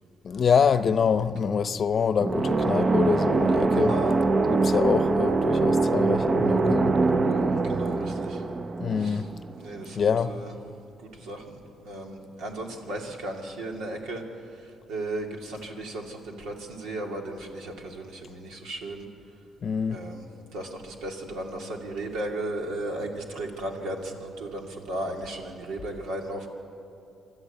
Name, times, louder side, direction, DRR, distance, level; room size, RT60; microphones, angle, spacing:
voice 1, 0.2-4.0 4.5-7.0 8.0-8.1 8.8-9.3 9.9-10.4 19.6-20.0, left 6 dB, 50° left, 0.7 m, -25 dB
sound 1, 2.2-9.9, right 3 dB, 35° right, 0.7 m, -23 dB
voice 2, 3.7-4.1 7.6-8.4 9.0-9.2 9.6-10.5 11.0-14.2 14.9-19.0 19.9-20.2 20.5-26.5, right 1 dB, 90° right, 2.6 m, -35 dB
25.5 x 13.0 x 8.4 m
cardioid pair, 90°, 0 cm